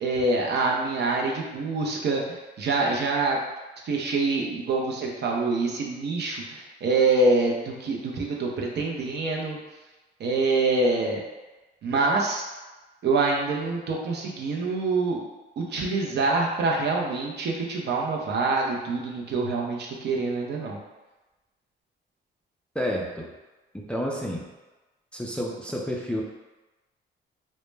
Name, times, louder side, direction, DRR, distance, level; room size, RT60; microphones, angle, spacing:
voice 1, 0.0-3.4 3.9-9.6 10.2-11.2 11.8-12.4 13.0-15.2 15.6-20.8, right 3 dB, 60° right, -1 dB, 0.5 m, -25 dB
voice 2, 22.8-23.3 23.7-24.5 25.1-26.2, equal, 5° left, -2 dB, 0.3 m, -30 dB
2.1 x 2.0 x 3.2 m, 1.1 s
cardioid pair, 90°, 20 cm